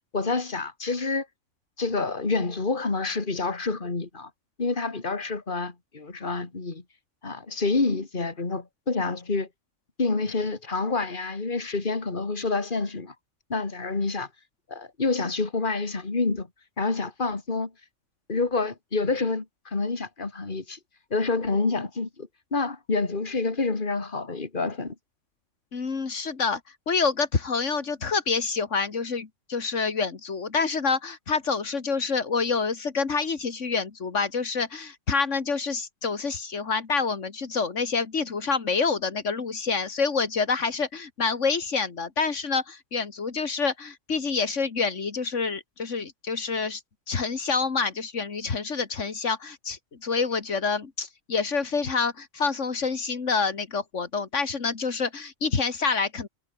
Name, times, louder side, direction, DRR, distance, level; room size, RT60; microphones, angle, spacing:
voice 1, 0.1-1.3 1.8-4.3 4.6-6.8 7.2-9.5 10.0-13.1 13.5-14.3 14.7-16.5 16.8-17.7 18.3-20.8 21.1-24.9, left 3 dB, 45° left, 2.6 m, -28 dB
voice 2, 25.7-26.6 26.9-46.8 47.1-56.3, left 5 dB, 85° left, 2.3 m, -27 dB
omnidirectional pair, 1.2 m